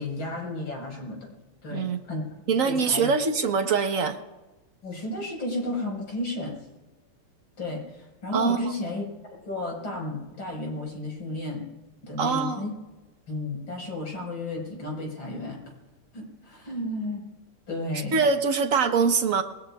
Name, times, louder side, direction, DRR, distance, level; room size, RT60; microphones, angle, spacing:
voice 1, 0.0-1.3 1.6-2.2 2.6-3.1 4.8-6.6 7.6-9.1 9.3-11.6 12.0-12.7 13.3-15.7 16.1-17.2 17.7-18.2, left 2 dB, 75° left, 0 dB, 6.2 m, -33 dB
voice 2, 2.5-4.2 8.3-8.7 12.2-12.7 17.9-19.4, right 5 dB, 45° right, 6 dB, 1.3 m, -24 dB
28.0 x 21.0 x 2.4 m, 1.1 s
omnidirectional pair, 2.3 m